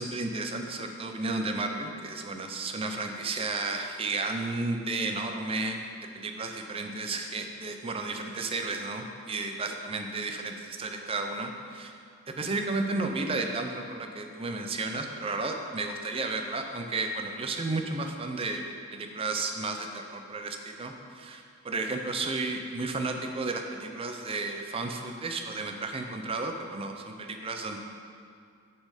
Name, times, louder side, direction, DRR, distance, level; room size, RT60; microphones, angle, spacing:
voice 1, 0.0-5.8 6.1-11.9 12.3-18.6 18.9-27.8, right 3 dB, 25° right, 4 dB, 0.5 m, -33 dB
7.0 x 5.3 x 4.9 m, 2.3 s
head